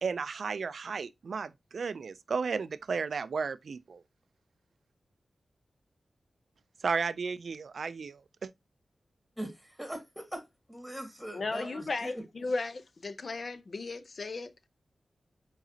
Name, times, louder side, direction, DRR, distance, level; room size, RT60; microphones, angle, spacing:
voice 1, 0.0-4.0 6.8-8.5, right 5 dB, 75° right, 0.3 m, -34 dB
voice 2, 9.4-12.1, right 1 dB, ahead, 1.9 m, -41 dB
voice 3, 11.3-14.5, left 3 dB, 55° left, 0.6 m, -35 dB
4.9 x 3.9 x 2.7 m
cardioid pair, 65°, 0 cm